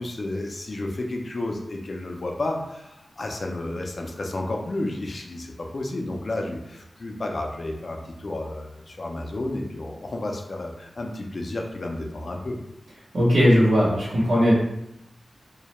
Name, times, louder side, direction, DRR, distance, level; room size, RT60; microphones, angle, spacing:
voice 1, 0.0-12.6, left 2 dB, 45° left, 1 dB, 0.4 m, -31 dB
voice 2, 13.1-14.5, equal, 85° right, -8 dB, 0.8 m, -18 dB
2.2 x 2.0 x 2.9 m, 0.85 s
wide cardioid pair, 125°, 0 cm